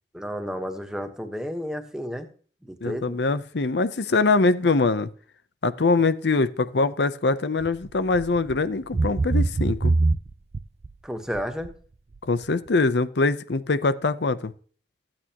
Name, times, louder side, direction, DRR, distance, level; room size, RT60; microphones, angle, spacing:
voice 1, 0.1-2.3 2.6-3.2 11.0-11.7, equal, 5° right, 6 dB, 1.1 m, -32 dB
voice 2, 2.8-5.1 5.6-10.0 12.2-14.5, left 3 dB, 80° left, 13 dB, 0.7 m, -23 dB
sound 1, 7.6-7.8 8.1-8.6 8.9-10.9 11.3-11.7 12.2-12.3, right 3 dB, 35° right, 0.4 m, -23 dB
14.0 x 8.8 x 2.9 m, 0.44 s
head